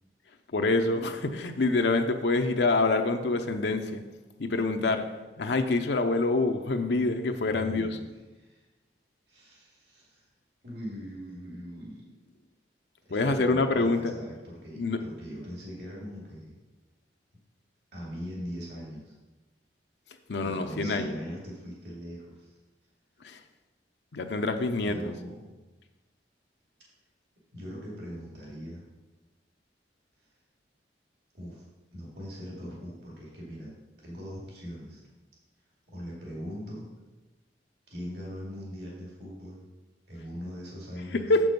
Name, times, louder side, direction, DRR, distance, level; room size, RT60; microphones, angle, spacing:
voice 1, 0.5-4.0 4.4-5.0 5.4-7.9 13.1-14.1 14.8-15.0 20.3-21.1 23.2-23.4 24.1-25.1 41.3-41.4, left 3 dB, 75° left, 5 dB, 0.6 m, -26 dB
voice 2, 7.5-8.6 9.3-10.2 10.6-12.1 13.0-16.6 17.9-19.1 20.4-22.6 24.8-25.5 27.5-28.9 31.3-31.6 31.9-33.7 34.0-35.0 35.9-36.9 37.9-39.6 40.1-41.2, equal, 65° right, -4 dB, 2.6 m, -41 dB
7.5 x 6.1 x 5.2 m, 1.1 s
head